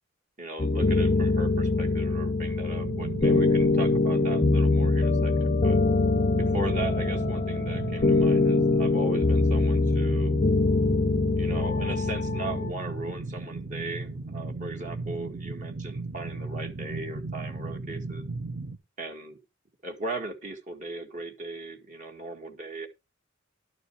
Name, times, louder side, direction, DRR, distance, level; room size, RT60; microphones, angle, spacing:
voice 1, 0.4-5.8 6.5-10.4 11.4-18.2 19.0-19.4 19.8-22.9, right 2 dB, 40° right, 1.9 m, -38 dB
sound 1, 0.6-12.7, left 3 dB, 35° left, 0.6 m, -24 dB
sound 2, 2.7-18.8, right 3 dB, 55° right, 1.3 m, -36 dB
12.0 x 6.8 x 4.6 m
head